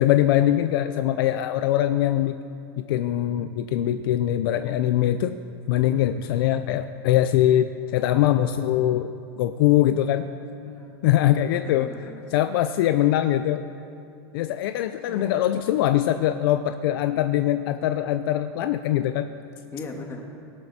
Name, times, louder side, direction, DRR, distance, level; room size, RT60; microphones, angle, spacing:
voice 1, 0.0-2.3 2.8-5.4 5.7-9.1 9.4-10.3 11.0-11.9 12.3-13.6 14.3-19.3, left 12 dB, 60° left, 10 dB, 0.6 m, -22 dB
voice 2, 10.7-11.0 11.5-12.3 14.9-15.4 19.7-20.2, left 3 dB, 20° left, 2 dB, 2.1 m, -39 dB
18.0 x 17.0 x 4.3 m, 2.5 s
supercardioid pair, 140°, 14 cm